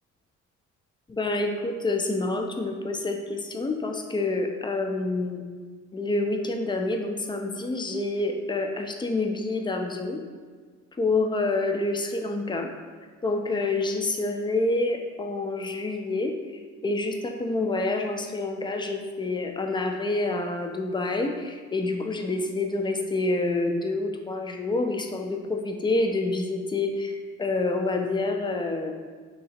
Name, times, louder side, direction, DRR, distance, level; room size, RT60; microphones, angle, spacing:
voice 1, 1.1-5.4 5.9-10.2 11.0-12.7 13.2-16.4 16.8-27.1 27.4-28.9, left 2 dB, 15° left, 4 dB, 0.4 m, -27 dB
3.7 x 2.7 x 4.3 m, 1.5 s
cardioid pair, 90°, 30 cm